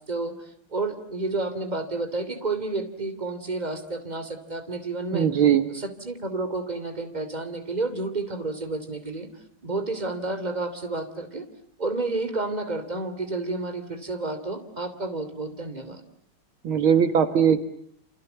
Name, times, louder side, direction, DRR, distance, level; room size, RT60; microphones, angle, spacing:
voice 1, 0.1-5.3 5.7-9.3 9.6-11.4 11.8-16.0, right 3 dB, 20° right, 9 dB, 3.1 m, -30 dB
voice 2, 5.1-5.7 16.6-17.6, right 8 dB, 70° right, 10 dB, 2.3 m, -20 dB
29.5 x 28.0 x 7.0 m, 0.64 s
omnidirectional pair, 2.4 m